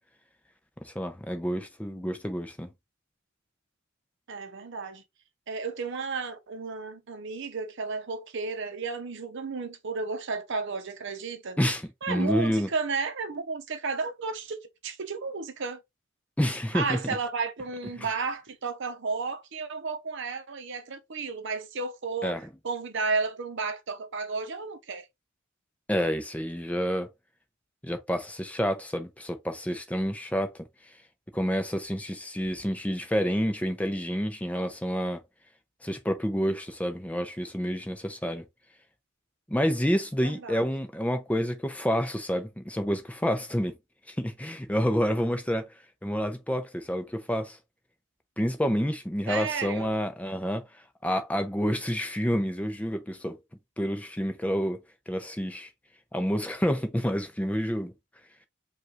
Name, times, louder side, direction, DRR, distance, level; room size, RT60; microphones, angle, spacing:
voice 1, 0.8-2.7 11.6-12.7 16.4-17.0 18.0-18.1 22.2-22.4 25.9-27.1 27.8-30.5 31.3-35.2 35.8-38.4 39.5-43.8 44.1-45.7 46.0-47.6 48.4-50.7 51.0-53.4 53.8-54.8 55.1-55.7 56.1-57.9, equal, 5° left, 0.6 m, -28 dB
voice 2, 4.3-5.0 5.5-11.6 12.0-15.8 16.7-22.4 22.6-25.1 40.2-40.7 49.3-50.0, right 4 dB, 60° right, 0.7 m, -33 dB
5.2 x 2.4 x 3.0 m
head